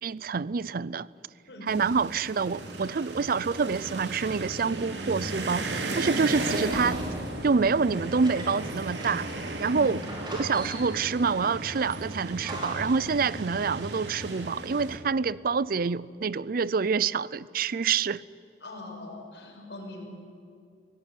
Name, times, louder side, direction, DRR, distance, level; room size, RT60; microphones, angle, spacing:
voice 1, 0.0-1.1 1.7-7.0 7.4-9.3 9.6-10.0 10.4-18.2, right 5 dB, 55° right, 0.5 m, -27 dB
sound 1, 1.7-15.0, right 2 dB, 80° right, 2.8 m, -35 dB
sound 2, 6.7-9.5 9.7-9.8 10.0-11.1 11.7-13.1, right 1 dB, 25° right, 4.7 m, -40 dB
voice 2, 18.6-20.1, left 2 dB, 70° left, 6.2 m, -41 dB
24.5 x 17.0 x 9.8 m
head